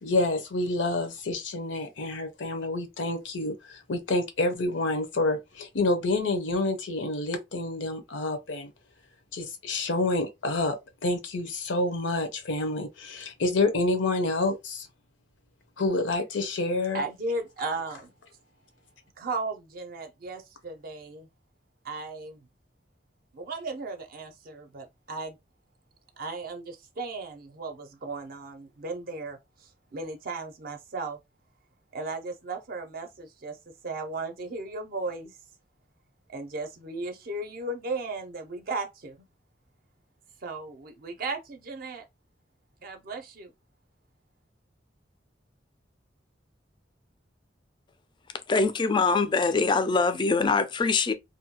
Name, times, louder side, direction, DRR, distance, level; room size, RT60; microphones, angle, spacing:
voice 1, 0.0-8.7 9.3-10.8 11.0-14.9 15.8-17.0, left 2 dB, 85° left, 0.7 m, -28 dB
voice 2, 16.9-18.1 19.2-21.3 21.8-22.5 23.3-25.4 26.2-31.2 31.9-33.6 33.8-35.4 36.3-39.3 40.4-42.1 42.8-43.5, right 3 dB, 50° right, 0.5 m, -36 dB
voice 3, 48.5-51.1, left 4 dB, 25° left, 0.3 m, -23 dB
2.6 x 2.2 x 2.7 m
head